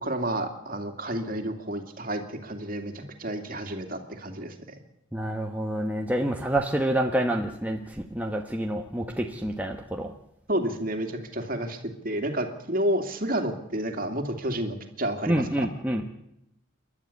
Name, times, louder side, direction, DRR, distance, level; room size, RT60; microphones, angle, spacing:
voice 1, 0.0-4.5 10.5-11.8 12.0-15.4, right 1 dB, 45° right, 5 dB, 2.5 m, -30 dB
voice 2, 5.1-10.1 15.3-16.1, right 1 dB, 10° right, 2 dB, 1.2 m, -28 dB
29.0 x 12.0 x 8.6 m, 0.82 s
head